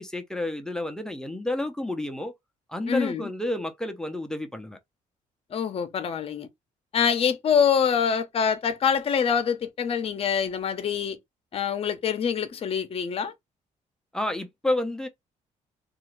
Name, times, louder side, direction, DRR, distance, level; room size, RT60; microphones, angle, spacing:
voice 1, 0.0-2.3 2.7-4.8 14.1-15.1, left 1 dB, 5° left, 0.6 m, -30 dB
voice 2, 2.9-3.3 5.5-6.5 6.9-11.2 11.5-13.3, left 7 dB, 45° left, 0.7 m, -25 dB
2.7 x 2.5 x 3.1 m
cardioid pair, 120°, 14 cm